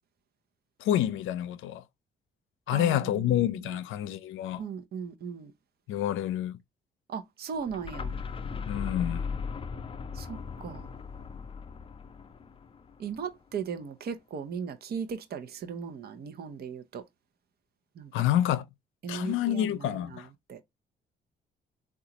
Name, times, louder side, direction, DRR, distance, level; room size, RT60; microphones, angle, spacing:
voice 1, 0.8-1.8 2.7-4.6 5.9-6.6 8.7-9.3 18.1-18.7 19.1-20.3, left 12 dB, 85° left, 0.5 m, -28 dB
voice 2, 2.7-3.2 4.6-5.5 7.1-8.1 10.1-10.9 13.0-17.0 18.0-18.1 19.0-20.2 20.5-20.6, right 6 dB, 50° right, 0.6 m, -37 dB
sound 1, 7.6-13.4, left 5 dB, 25° left, 0.5 m, -38 dB
3.8 x 2.3 x 2.8 m
cardioid pair, 90°, 20 cm